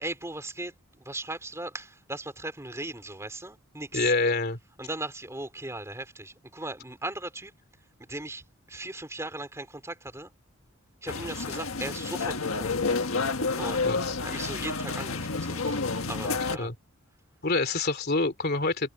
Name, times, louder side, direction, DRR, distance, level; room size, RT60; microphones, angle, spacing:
voice 1, 0.0-4.1 4.8-7.5 8.0-10.3 11.0-12.7 13.6-13.8 14.2-15.8 16.1-16.7, right 2 dB, 15° right, 3.3 m, -38 dB
voice 2, 3.9-4.6 13.8-14.2 16.6-16.7 17.4-18.9, left 3 dB, 50° left, 3.0 m, -26 dB
sound 1, 11.1-16.6, left 4 dB, 75° left, 1.6 m, -29 dB
head